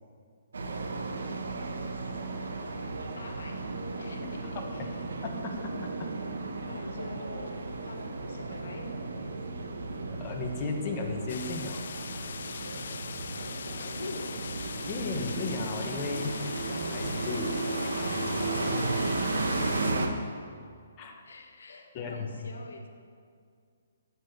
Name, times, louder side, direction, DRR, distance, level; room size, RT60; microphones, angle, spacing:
sound 1, 0.5-20.1, right 3 dB, 85° right, 1.4 m, -34 dB
voice 1, 1.9-5.1 6.6-9.0 13.7-14.4 17.8-20.3 21.0-22.9, left 3 dB, 80° left, 4 dB, 1.7 m, -45 dB
voice 2, 4.5-4.9 5.2-5.7 6.0-6.1 10.2-11.8 14.9-17.7 21.0-21.1 21.9-22.5, left 3 dB, 20° left, 1 dB, 1.3 m, -35 dB
sound 2, 11.3-19.9, left 7 dB, 60° left, 0.4 m, -41 dB
9.3 x 8.8 x 8.1 m, 2.2 s
hypercardioid pair, 165°, 0 cm